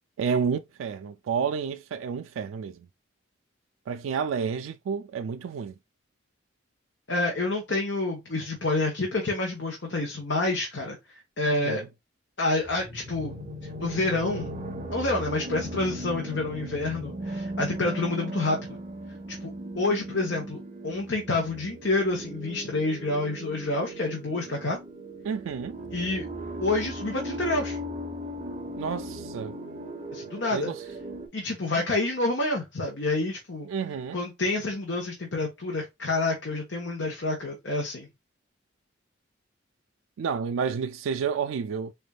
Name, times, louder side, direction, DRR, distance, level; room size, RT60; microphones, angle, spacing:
voice 1, 0.2-2.9 3.9-5.7 11.5-11.9 25.2-25.8 28.8-29.6 30.5-30.8 33.6-34.2 40.2-41.9, right 6 dB, 90° right, 0.3 m, -30 dB
voice 2, 7.1-11.0 11.4-11.8 12.4-13.4 13.8-14.5 14.9-18.8 19.3-24.8 25.9-26.2 26.6-27.8 30.1-30.7 31.3-33.7 34.1-38.1, left 2 dB, 65° left, 1.1 m, -28 dB
sound 1, 12.6-31.3, equal, 35° right, 1.0 m, -37 dB
4.1 x 3.4 x 2.3 m
head